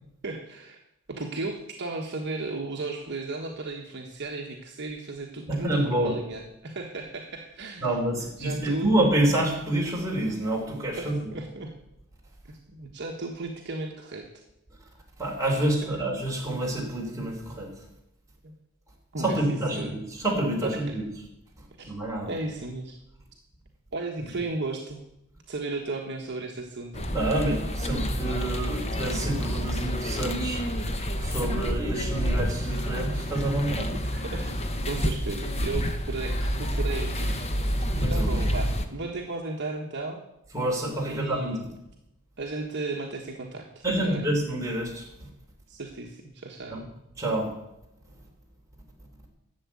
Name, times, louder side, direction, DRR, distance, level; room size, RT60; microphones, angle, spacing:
voice 1, 0.2-0.8 1.1-8.0 8.4-9.0 11.0-11.7 12.5-14.3 18.4-18.5 19.1-19.9 20.6-21.0 21.8-21.9 22.3-23.0 23.9-25.0 25.5-27.1 34.1-34.6 34.9-37.3 38.1-40.2 41.1-41.6 42.4-44.2 45.7-46.9, right 3 dB, 50° right, 1 dB, 1.3 m, -35 dB
voice 2, 5.5-6.1 7.8-11.3 15.2-17.7 19.2-21.0 21.8-22.3 27.1-30.7 31.2-33.9 37.9-38.4 40.5-41.7 43.8-45.1 46.7-46.8 47.2-47.5, right 1 dB, 15° right, -2 dB, 3.4 m, -28 dB
sound 1, 26.9-38.9, equal, 30° left, 1.0 m, -28 dB
12.0 x 7.4 x 8.4 m, 0.87 s
head